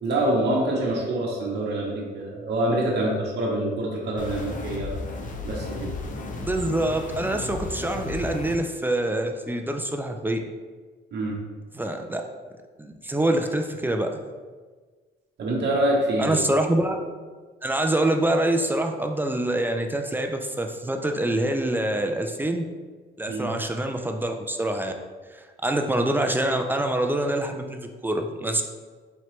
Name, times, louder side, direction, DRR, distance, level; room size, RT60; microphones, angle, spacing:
voice 1, 0.0-5.0 5.4-5.9 11.1-11.3 15.4-16.4 23.3-23.5, right 1 dB, 60° right, -3 dB, 0.8 m, -25 dB
sound 1, 4.2-8.6, left 3 dB, 40° left, 0.5 m, -34 dB
voice 2, 6.4-10.4 11.7-12.2 12.8-14.2 16.2-17.0 17.6-22.6 23.2-24.9 25.3-28.6, right 1 dB, 10° right, 4 dB, 0.3 m, -25 dB
4.3 x 3.0 x 3.0 m, 1.4 s
cardioid pair, 90°, 20 cm